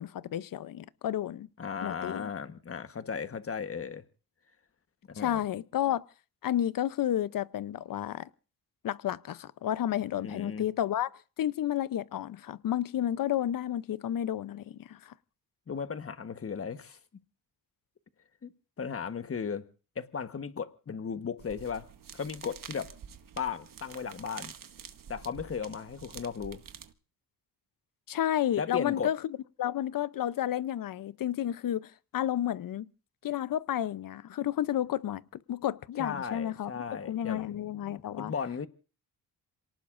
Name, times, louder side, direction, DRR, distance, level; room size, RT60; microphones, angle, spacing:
voice 1, 0.0-1.5 1.8-2.3 5.2-6.0 6.4-8.3 8.8-11.1 11.4-15.1 28.1-29.2 29.6-32.9 33.2-35.2 35.5-38.3, left 11 dB, 60° left, 0.7 m, -31 dB
voice 2, 1.6-4.0 5.1-5.4 10.2-10.7 15.7-17.0 18.4-18.5 18.8-19.7 20.0-21.9 22.1-22.9 23.4-24.5 25.1-26.6 28.6-29.1 36.0-38.7, left 6 dB, 35° left, 1.3 m, -36 dB
sound 1, 21.4-26.9, right 8 dB, 55° right, 1.3 m, -48 dB
28.0 x 18.5 x 2.6 m
cardioid pair, 90°, 39 cm